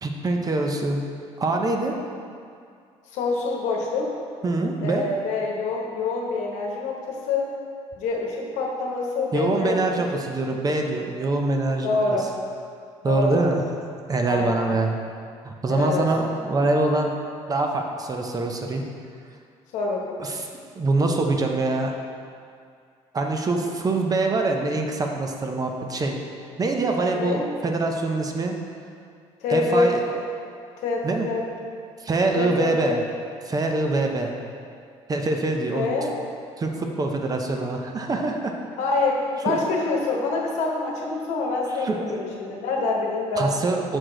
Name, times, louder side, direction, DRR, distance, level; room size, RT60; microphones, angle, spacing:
voice 1, 0.0-1.0 1.4-1.9 4.4-5.0 9.3-12.0 13.0-13.6 14.1-15.0 15.4-17.1 17.5-18.8 20.2-20.5 20.8-21.9 23.1-26.2 26.6-28.5 29.5-30.0 31.0-31.3 32.0-33.0 33.4-34.3 35.1-35.9 36.6-38.5 39.5-39.6 41.8-42.2 43.4-44.0, right 2 dB, 30° right, 3 dB, 0.7 m, -24 dB
voice 2, 3.1-4.1 4.8-7.5 8.0-10.2 11.8-12.3 13.0-13.4 14.3-14.7 15.7-16.1 19.7-20.2 27.1-27.4 29.4-30.2 30.8-31.4 32.3-33.0 35.7-36.1 37.5-37.6 38.8-43.5, left 3 dB, 80° left, -1 dB, 1.0 m, -26 dB
6.2 x 4.6 x 3.8 m, 2.3 s
cardioid pair, 90°, 12 cm